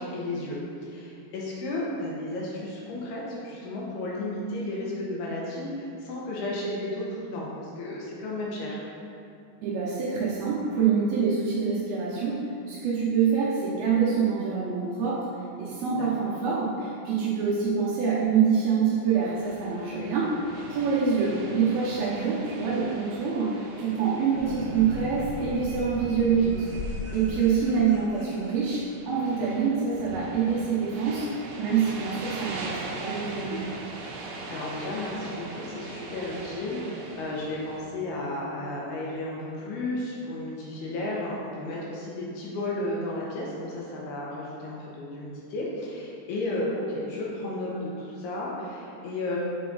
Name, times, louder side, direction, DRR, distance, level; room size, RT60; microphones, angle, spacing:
voice 1, 0.0-8.8 15.9-16.3 19.9-20.1 34.1-49.4, left 1 dB, 75° left, -4 dB, 2.8 m, -33 dB
voice 2, 9.6-12.4 12.7-15.2 15.6-20.3 20.7-31.3 31.6-33.7, right 6 dB, 75° right, -7 dB, 2.4 m, -26 dB
sound 1, 19.2-37.8, right 2 dB, 90° right, 1.8 m, -41 dB
sound 2, 24.3-29.1, left 1 dB, 55° left, 1.3 m, -37 dB
7.6 x 5.0 x 3.9 m, 2.6 s
omnidirectional pair, 5.0 m